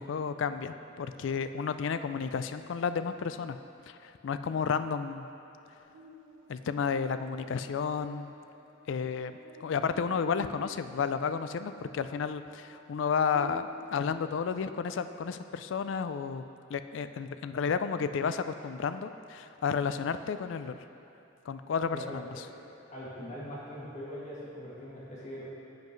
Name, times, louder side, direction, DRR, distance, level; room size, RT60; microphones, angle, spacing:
voice 1, 0.0-3.6 3.9-5.3 6.5-8.3 8.9-9.3 9.6-16.4 16.7-20.8 21.5-22.4, left 6 dB, 65° left, 11 dB, 0.3 m, -32 dB
Buzz, 5.9-15.4, equal, 80° right, 1.2 m, -51 dB
voice 2, 22.9-25.4, equal, 35° left, -7 dB, 2.1 m, -41 dB
10.5 x 7.7 x 3.1 m, 2.8 s
head